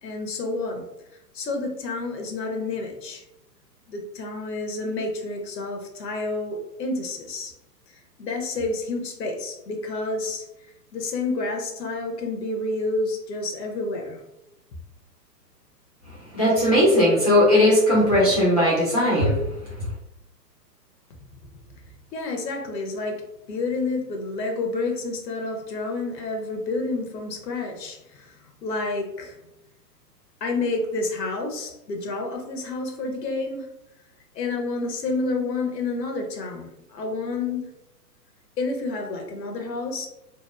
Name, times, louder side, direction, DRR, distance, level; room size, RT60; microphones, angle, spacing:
voice 1, 0.0-0.8 1.3-3.2 3.9-7.5 8.2-10.5 10.9-14.2 21.8-21.9 22.1-23.2 23.5-28.4 28.6-29.4 30.4-33.7 34.3-37.7 38.6-40.1, left 3 dB, 75° left, 3 dB, 0.8 m, -29 dB
voice 2, 16.3-19.4, left 1 dB, 25° left, -7 dB, 0.3 m, -18 dB
2.8 x 2.1 x 2.3 m, 0.89 s
hypercardioid pair, 125°, 49 cm